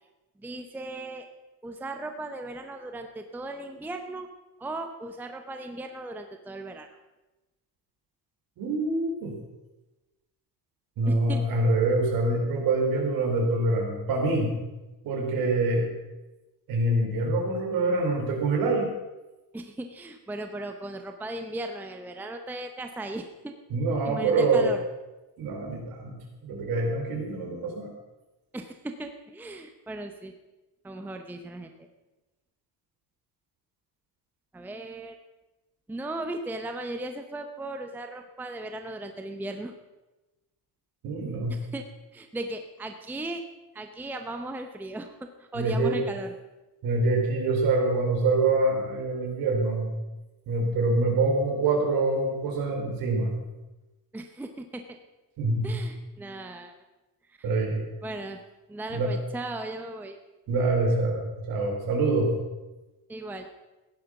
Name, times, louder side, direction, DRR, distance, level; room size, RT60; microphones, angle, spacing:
voice 1, 0.4-1.3 1.6-4.3 4.6-6.9 11.1-11.4 19.5-23.5 24.0-24.8 28.5-30.3 30.8-31.9 34.5-35.2 35.9-39.7 41.5-41.8 42.1-43.4 43.7-46.3 54.1-55.0 55.6-56.7 57.3-57.5 58.0-58.4 58.7-60.2 63.1-63.5, right 2 dB, 5° right, 6 dB, 0.7 m, -37 dB
voice 2, 8.6-9.3 11.0-14.5 15.0-15.9 16.7-18.9 23.7-24.7 25.4-26.1 26.4-27.9 41.0-41.5 45.5-46.0 46.8-49.9 50.5-53.3 55.4-55.8 57.4-57.8 58.9-59.1 60.5-62.3, right 2 dB, 60° right, 1 dB, 4.4 m, -25 dB
16.0 x 10.5 x 5.9 m, 1.1 s
cardioid pair, 180°, 39 cm